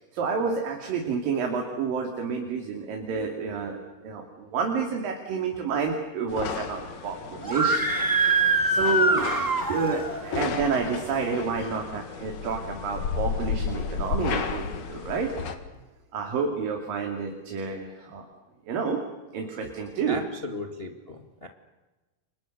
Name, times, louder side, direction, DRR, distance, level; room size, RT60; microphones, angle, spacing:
voice 1, 0.1-7.9 8.7-9.3 9.7-15.3 16.1-18.3 18.7-19.0 19.3-20.2, right 5 dB, 65° right, 2 dB, 4.3 m, -29 dB
sound 1, 6.3-15.5, left 6 dB, 60° left, 3.1 m, -33 dB
Screaming, 7.4-10.2, right 2 dB, 10° right, 0.8 m, -24 dB
voice 2, 20.1-21.5, left 1 dB, 25° left, 4 dB, 1.2 m, -36 dB
30.0 x 25.5 x 6.7 m, 1.1 s
omnidirectional pair, 4.3 m